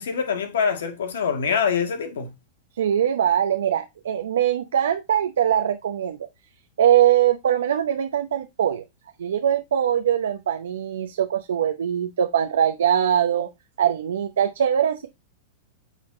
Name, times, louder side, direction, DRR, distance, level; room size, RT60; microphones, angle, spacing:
voice 1, 0.0-2.3, left 6 dB, 80° left, 1.8 m, -24 dB
voice 2, 2.8-6.2 6.8-8.8 9.2-13.5 13.8-15.1, right 9 dB, 85° right, 0.7 m, -22 dB
8.9 x 4.2 x 3.1 m
hypercardioid pair, 120°, 0 cm